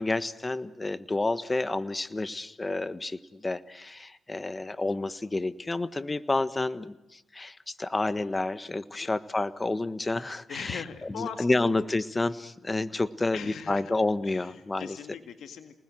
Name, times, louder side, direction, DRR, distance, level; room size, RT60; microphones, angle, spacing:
voice 1, 0.0-10.8 11.1-15.0, left 2 dB, 25° left, 14 dB, 1.4 m, -30 dB
voice 2, 10.5-11.7 12.9-13.0 13.3-13.9 14.2-15.7, left 7 dB, 75° left, 9 dB, 2.0 m, -40 dB
28.5 x 20.0 x 7.8 m, 0.88 s
supercardioid pair, 55°, 0 cm